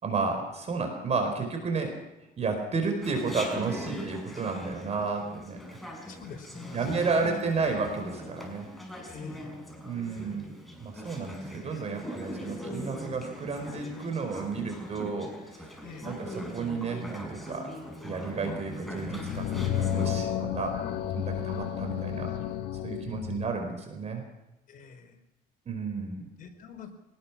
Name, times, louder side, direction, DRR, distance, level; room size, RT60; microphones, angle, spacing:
voice 1, 0.0-2.0 2.4-5.8 6.7-8.7 9.8-10.5 10.8-15.6 16.0-17.7 18.0-22.3 22.8-24.2 25.7-26.3, right 4 dB, 40° right, 5 dB, 4.7 m, -32 dB
Chatter, 3.0-20.1, equal, ahead, 6.0 m, -41 dB
voice 2, 6.0-7.1 9.1-9.6 11.1-11.2 15.8-16.1 24.7-25.2 26.4-26.9, left 6 dB, 55° left, 3 dB, 5.0 m, -45 dB
sound 1, 19.0-23.6, left 10 dB, 75° left, 2.0 m, -31 dB
24.5 x 19.5 x 6.1 m, 0.99 s
cardioid pair, 110°, 17 cm